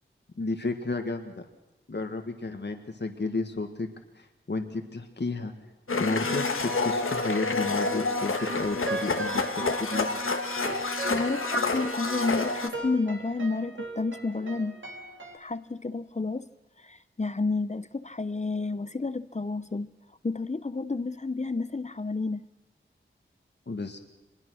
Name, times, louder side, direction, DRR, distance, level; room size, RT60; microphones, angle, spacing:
voice 1, 0.4-1.4 1.9-3.9 4.2-5.5 6.0-10.1 23.7-24.0, left 3 dB, 55° left, 6 dB, 1.7 m, -32 dB
Domestic sounds home sounds, 5.9-12.7, left 3 dB, 90° left, 1.5 m, -28 dB
sound 1, 8.4-15.4, right 3 dB, 70° right, 3.4 m, -39 dB
voice 2, 11.1-14.8 15.3-16.5 16.8-19.9 20.2-22.4, left 3 dB, 35° left, 14 dB, 0.7 m, -30 dB
24.0 x 21.0 x 6.4 m, 1.0 s
wide cardioid pair, 45°, 21 cm